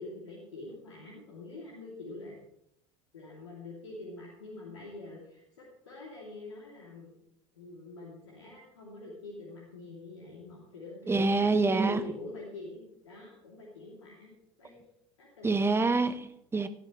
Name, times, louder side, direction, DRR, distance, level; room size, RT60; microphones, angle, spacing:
voice 1, 0.0-2.4 3.1-7.1 7.5-14.3 14.6-14.8 15.2-15.9, left 2 dB, 80° left, 2.8 m, -45 dB
voice 2, 11.1-12.1 15.4-16.7, right 3 dB, 15° right, 1.1 m, -26 dB
18.0 x 11.5 x 3.2 m
figure-of-eight pair, 70°, 15 cm